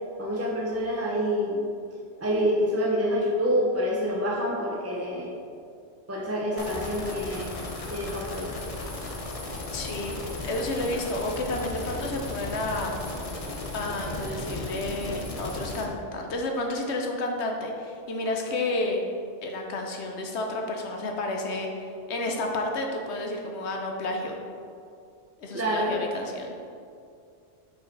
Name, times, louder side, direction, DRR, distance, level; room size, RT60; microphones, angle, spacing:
voice 1, 0.2-1.7 2.2-5.3 6.1-7.5 7.9-8.5 25.5-25.9, equal, 20° right, -4 dB, 0.4 m, -27 dB
sound 1, 6.6-15.9, left 2 dB, 35° left, 0.7 m, -35 dB
voice 2, 9.7-10.1 10.4-12.9 13.7-19.0 19.4-24.4 25.4-26.5, left 2 dB, 65° left, 2 dB, 1.0 m, -31 dB
4.9 x 4.8 x 4.6 m, 2.4 s
omnidirectional pair, 1.2 m